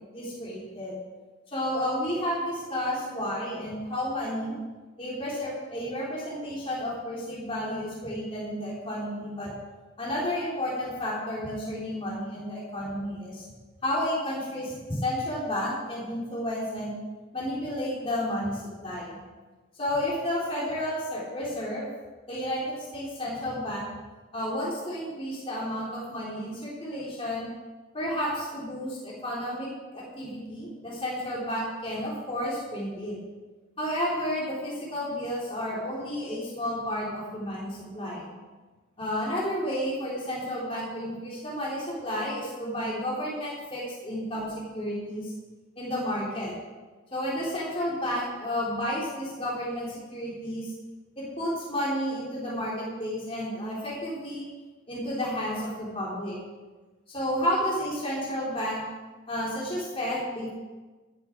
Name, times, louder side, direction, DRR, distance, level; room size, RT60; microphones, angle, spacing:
voice 1, 0.1-1.0 1.5-4.6 5.0-9.5 10.0-13.3 13.8-17.0 17.3-19.2 19.8-21.9 22.3-23.9 24.3-27.5 27.9-29.7 29.9-33.2 33.8-38.3 39.0-45.3 45.8-46.5 47.1-50.7 51.2-54.5 54.9-56.4 57.1-58.8 59.3-60.5, equal, 25° left, -6 dB, 3.6 m, -31 dB
14.5 x 11.5 x 4.7 m, 1.3 s
head